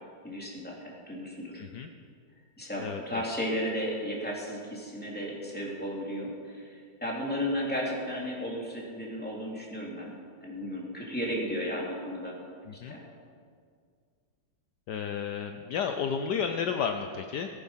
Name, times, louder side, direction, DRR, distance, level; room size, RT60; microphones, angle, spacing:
voice 1, 0.2-1.6 2.6-10.1 10.4-12.3 12.9-13.0, equal, 5° left, -4 dB, 3.0 m, -34 dB
voice 2, 1.6-1.9 2.8-3.2 12.7-12.9 14.9-17.5, left 7 dB, 70° left, 6 dB, 1.2 m, -32 dB
19.0 x 9.7 x 5.7 m, 2.1 s
omnidirectional pair, 2.0 m